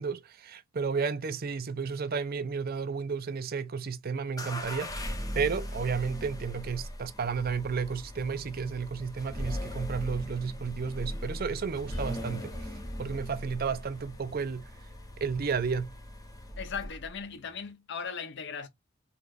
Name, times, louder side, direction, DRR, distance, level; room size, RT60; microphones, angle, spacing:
voice 1, 0.0-12.5 13.0-14.7 15.2-15.9, right 5 dB, 50° right, 0.5 m, -32 dB
sound 1, 4.4-17.2, left 1 dB, 20° left, 0.8 m, -39 dB
sound 2, 11.9-17.7, left 1 dB, 75° left, 1.3 m, -55 dB
voice 2, 16.6-18.7, left 6 dB, 60° left, 0.7 m, -38 dB
4.2 x 3.1 x 2.4 m
head